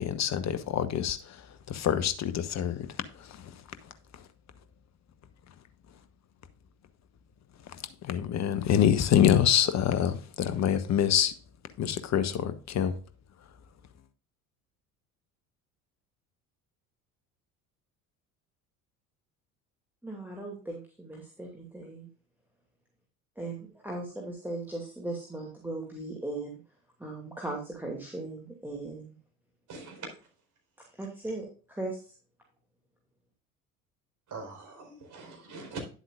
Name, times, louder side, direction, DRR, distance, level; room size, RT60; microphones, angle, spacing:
voice 1, 0.0-1.4 1.7-2.8 3.2-3.5 8.0-11.3 11.8-13.0, left 9 dB, 40° left, 1.2 m, -26 dB
voice 2, 20.0-22.1 23.4-26.6 27.0-29.2 30.8-32.1, right 2 dB, 5° right, 2.4 m, -38 dB
voice 3, 29.7-30.1 34.3-35.8, right 3 dB, 45° right, 4.3 m, -42 dB
10.5 x 7.8 x 2.5 m
figure-of-eight pair, 60°, 43 cm